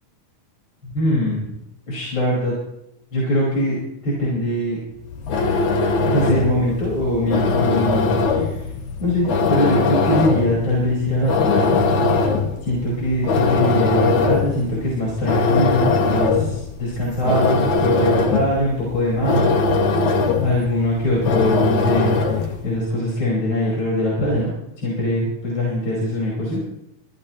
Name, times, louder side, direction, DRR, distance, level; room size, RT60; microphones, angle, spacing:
voice 1, 0.9-1.5 1.9-2.5 3.1-4.8 6.0-8.5 9.0-11.8 12.6-19.8 20.4-22.1 22.6-26.6, left 1 dB, 35° left, -6 dB, 6.0 m, -22 dB
sound 1, 5.0-22.6, left 4 dB, 65° left, 3.3 m, -21 dB
25.5 x 15.5 x 3.1 m, 0.86 s
omnidirectional pair, 3.7 m